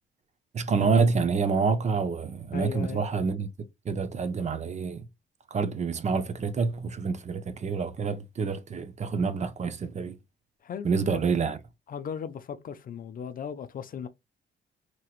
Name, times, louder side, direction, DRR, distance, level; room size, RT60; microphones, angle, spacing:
voice 1, 0.5-3.5 3.9-5.0 5.5-10.2 10.8-11.6, right 5 dB, 35° right, 0.5 m, -27 dB
voice 2, 2.5-3.0 10.6-11.2 11.9-14.1, left 7 dB, 45° left, 0.4 m, -37 dB
2.9 x 2.9 x 2.3 m
cardioid pair, 90°, 20 cm